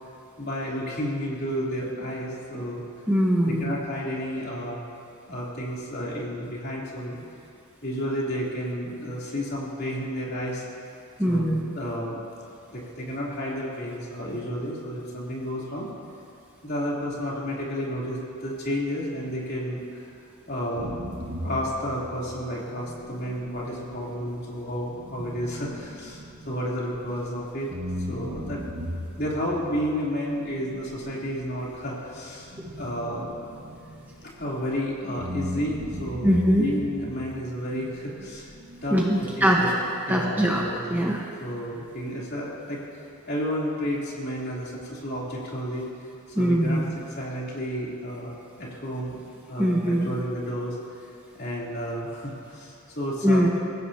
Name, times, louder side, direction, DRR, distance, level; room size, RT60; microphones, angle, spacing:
voice 1, 0.4-2.8 3.4-4.8 5.3-7.2 7.8-10.6 11.2-12.2 12.7-15.9 16.6-20.0 20.5-20.9 21.4-27.7 28.1-28.6 29.2-33.3 34.2-38.5 38.8-39.0 39.4-39.7 40.1-42.8 43.3-45.8 46.4-46.8 47.1-48.3 48.6-49.2 49.5-50.8 51.3-53.4, equal, 45° left, -5 dB, 3.3 m, -31 dB
voice 2, 3.1-3.6 11.2-11.6 32.6-32.7 36.2-36.7 38.9-39.6 40.1-40.6 40.9-41.2 46.3-46.8 49.6-50.1 53.2-53.6, equal, 10° right, -3 dB, 1.1 m, -22 dB
sound 1, 20.7-27.3 27.7-34.8 35.2-39.6, equal, 60° right, 1.5 m, -38 dB
24.5 x 15.5 x 2.9 m, 2.5 s
head